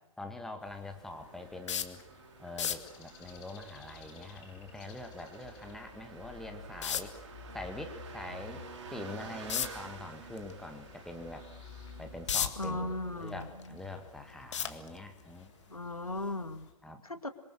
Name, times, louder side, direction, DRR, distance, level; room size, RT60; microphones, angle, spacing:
voice 1, 0.2-2.0 2.4-7.1 7.5-8.6 8.9-11.5 12.0-15.5 16.8-17.0, left 2 dB, ahead, 5 dB, 1.9 m, -44 dB
sound 1, 0.6-16.7, left 5 dB, 30° left, 4.8 m, -54 dB
sound 2, 0.6-16.4, right 5 dB, 55° right, 4.2 m, -52 dB
sound 3, 1.7-2.0 2.5-2.9 5.7-5.8 6.8-7.2 9.5-9.8 10.3-10.5 11.0-11.1 11.9-12.7 13.2-13.9 14.5-15.2 16.1-16.3 16.7-16.8, left 8 dB, 55° left, 1.9 m, -33 dB
voice 2, 12.6-13.8 15.7-16.7 17.0-17.3, left 2 dB, 85° left, 9 dB, 2.1 m, -37 dB
26.5 x 23.0 x 6.5 m, 0.85 s
figure-of-eight pair, 115°, 18 cm